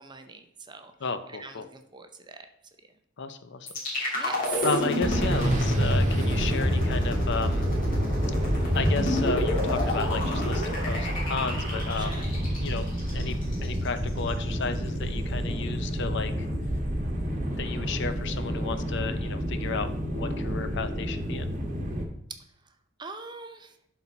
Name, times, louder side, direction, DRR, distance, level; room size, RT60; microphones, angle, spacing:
voice 1, 0.0-0.9 1.3-2.5 4.1-4.7 11.9-12.3 23.0-23.7, right 5 dB, 25° right, 7 dB, 0.7 m, -41 dB
voice 2, 1.0-1.7 3.2-3.7 4.0-4.3 4.6-7.7 8.7-12.3 12.6-12.9 13.1-13.3 13.6-16.5 17.6-21.5, left 5 dB, 60° left, 10 dB, 0.6 m, -33 dB
sound 1, 3.7-13.7, equal, 45° left, 2.6 m, -28 dB
sound 2, 5.0-22.0, equal, 40° right, 1.3 m, -30 dB
11.0 x 4.2 x 4.2 m, 0.77 s
head